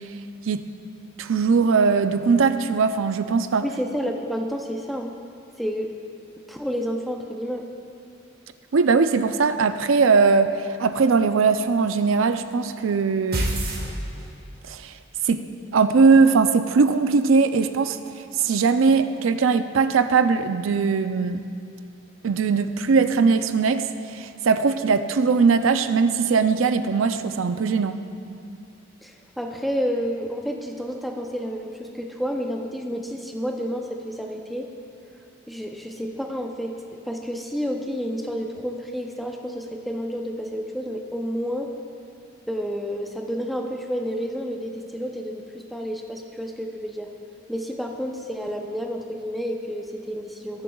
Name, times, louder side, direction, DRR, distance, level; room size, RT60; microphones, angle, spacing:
voice 1, 1.2-3.6 8.7-13.5 14.7-14.9 15.2-15.4 15.7-18.0 18.4-21.4 22.2-28.0, right 4 dB, 80° right, 10 dB, 0.5 m, -20 dB
voice 2, 3.6-5.2 5.6-5.9 6.5-7.7 29.0-34.7 35.5-36.7 37.0-41.7 42.5-47.1 47.5-50.6, equal, ahead, 2 dB, 0.6 m, -30 dB
sound 1, 13.3-14.6, right 1 dB, 50° right, 1.4 m, -27 dB
19.5 x 7.4 x 2.3 m, 2.5 s
head